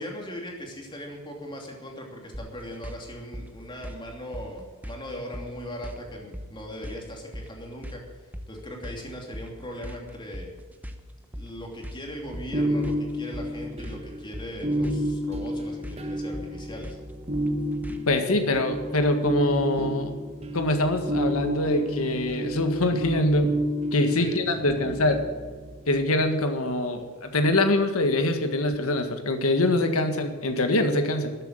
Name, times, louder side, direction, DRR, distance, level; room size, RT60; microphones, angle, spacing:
voice 1, 0.0-10.5 11.3-17.0 24.2-25.0, equal, 20° left, 0 dB, 2.8 m, -39 dB
sound 1, 2.3-18.2, equal, 5° right, 0.9 m, -41 dB
sound 2, 12.2-26.0 28.7-29.0, equal, 30° right, 1.3 m, -30 dB
voice 2, 18.1-20.1 20.5-23.5 23.9-25.2 25.9-31.4, left 1 dB, 75° left, 6 dB, 1.7 m, -24 dB
13.5 x 8.2 x 8.9 m, 1.5 s
head